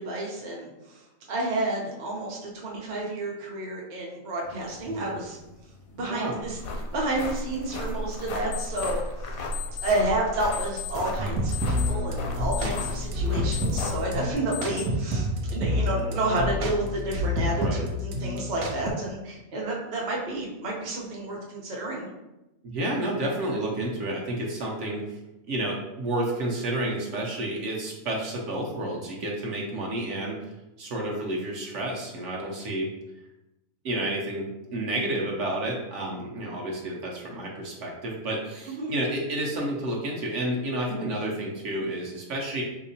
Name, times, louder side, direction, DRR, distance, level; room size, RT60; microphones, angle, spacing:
voice 1, 0.0-5.4 5.9-6.6 6.9-9.5 9.8-22.1 38.7-38.9, right 2 dB, 50° right, -2 dB, 0.6 m, -30 dB
sound 1, 4.4-14.9, left 10 dB, 65° left, 0.6 m, -42 dB
sound 2, 6.4-14.3, left 1 dB, 80° left, 1.0 m, -34 dB
sound 3, 11.2-18.9, left 1 dB, 90° right, 1.0 m, -29 dB
voice 2, 17.6-17.9 22.6-25.0 25.5-30.4 30.8-32.9 33.8-42.6, right 1 dB, 65° right, -2 dB, 0.9 m, -30 dB
3.4 x 2.8 x 2.7 m, 0.96 s
omnidirectional pair, 1.5 m